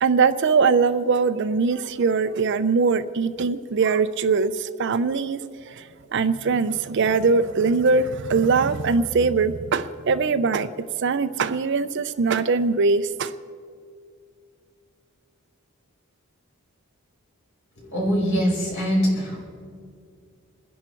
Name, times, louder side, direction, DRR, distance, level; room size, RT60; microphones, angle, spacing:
voice 1, 0.0-5.4 5.7-5.8 6.1-10.7 11.0-13.3, right 4 dB, 50° right, 12 dB, 0.4 m, -21 dB
voice 2, 17.8-19.4, equal, 55° left, -3 dB, 5.2 m, -23 dB
27.0 x 10.5 x 4.5 m, 2.2 s
head